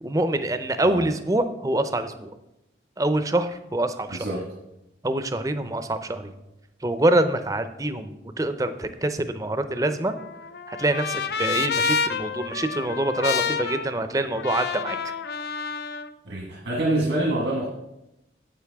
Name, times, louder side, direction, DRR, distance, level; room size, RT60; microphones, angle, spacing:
voice 1, 0.0-2.3 3.0-4.2 5.0-6.3 6.8-10.1 10.7-15.1, right 1 dB, 20° right, 10 dB, 0.5 m, -25 dB
voice 2, 4.1-4.4 16.2-17.7, right 1 dB, 90° right, -2 dB, 1.5 m, -26 dB
Trumpet, 9.8-16.1, left 6 dB, 65° left, 0.5 m, -29 dB
9.6 x 8.0 x 3.5 m, 0.90 s
head